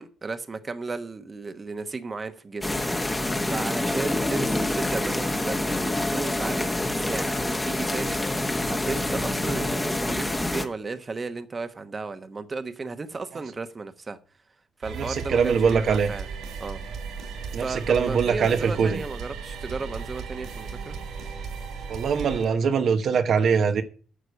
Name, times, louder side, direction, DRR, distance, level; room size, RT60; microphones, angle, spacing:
voice 1, 0.0-2.7 3.5-14.2 14.8-16.3 16.6-16.8 17.6-21.0, right 3 dB, 30° right, 1.1 m, -34 dB
sound 1, 2.6-10.6, left 1 dB, 15° left, 1.4 m, -27 dB
sound 2, 14.8-22.5, right 5 dB, 80° right, 3.7 m, -36 dB
voice 2, 14.9-16.1 17.5-19.0 21.9-23.8, right 6 dB, 60° right, 1.1 m, -22 dB
9.9 x 6.7 x 7.9 m
cardioid pair, 90°, 0 cm